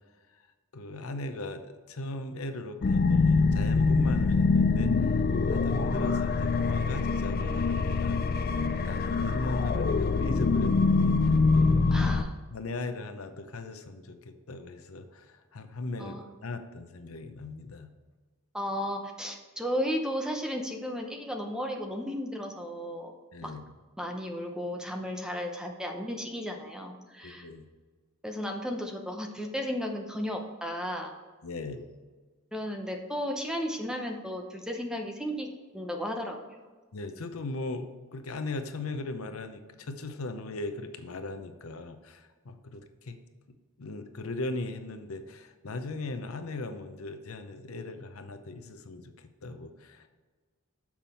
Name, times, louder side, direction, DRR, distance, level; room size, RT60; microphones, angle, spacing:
voice 1, 0.7-5.2 5.5-8.4 8.8-12.0 12.5-17.9 23.3-23.6 27.2-27.6 31.4-31.8 36.9-43.2 43.8-49.1 49.4-50.1, left 2 dB, 80° left, 8 dB, 0.7 m, -38 dB
sound 1, 2.8-12.2, left 4 dB, 45° left, 0.4 m, -24 dB
voice 2, 11.9-12.3 16.0-16.2 18.5-23.1 23.4-23.5 24.0-27.5 28.2-31.1 32.5-35.5 35.7-36.4, equal, 5° right, 3 dB, 0.8 m, -34 dB
7.1 x 5.9 x 4.3 m, 1.4 s
head